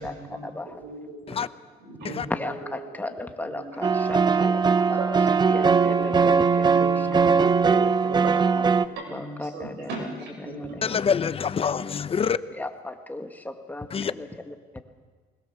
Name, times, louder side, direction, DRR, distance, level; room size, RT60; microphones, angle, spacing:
voice 1, 0.0-1.4 1.8-3.1 3.4-4.3 5.0-5.1 6.6-7.8 8.1-8.4 8.7-10.8, right 3 dB, 85° right, 7.1 m, -39 dB
voice 2, 2.4-5.0 5.5-6.9 7.4-8.2 9.1-9.9 10.5-10.7 12.5-14.5, left 2 dB, 10° left, 1.7 m, -36 dB
sound 1, 3.8-8.9, right 5 dB, 25° right, 0.7 m, -20 dB
voice 3, 10.8-12.4 13.9-14.1, left 7 dB, 35° left, 0.7 m, -25 dB
21.0 x 21.0 x 7.0 m
cardioid pair, 110°, 17 cm